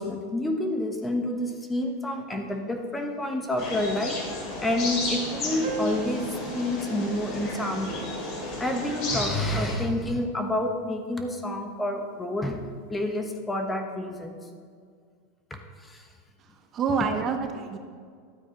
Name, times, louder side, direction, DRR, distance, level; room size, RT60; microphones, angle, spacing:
voice 1, 0.0-4.2 4.6-8.1 8.6-12.6 12.9-14.4 15.5-16.1, left 1 dB, 10° left, 4 dB, 1.0 m, -29 dB
sound 1, 3.6-9.8, left 2 dB, 50° left, 2.8 m, -33 dB
sound 2, 5.6-10.6, right 8 dB, 65° right, 1.1 m, -42 dB
voice 2, 16.4-17.8, right 5 dB, 35° right, 6 dB, 0.8 m, -28 dB
12.5 x 8.6 x 3.0 m, 2.1 s
hypercardioid pair, 115°, 0 cm